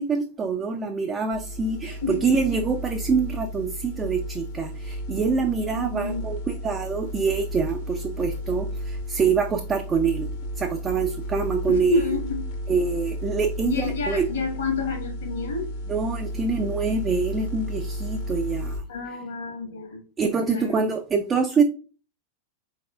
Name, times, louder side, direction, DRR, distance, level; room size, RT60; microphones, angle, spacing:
voice 1, 0.0-10.3 10.6-12.2 12.7-14.2 15.9-18.8 20.2-21.6, right 5 dB, 20° right, 0.4 m, -25 dB
sound 1, 1.3-18.8, equal, 50° left, 0.9 m, -33 dB
voice 2, 1.8-2.2 5.7-6.2 11.7-12.5 13.7-15.7 18.9-20.0 20.5-20.9, left 3 dB, 65° left, 1.6 m, -29 dB
4.1 x 4.0 x 2.4 m
figure-of-eight pair, 90°, 0 cm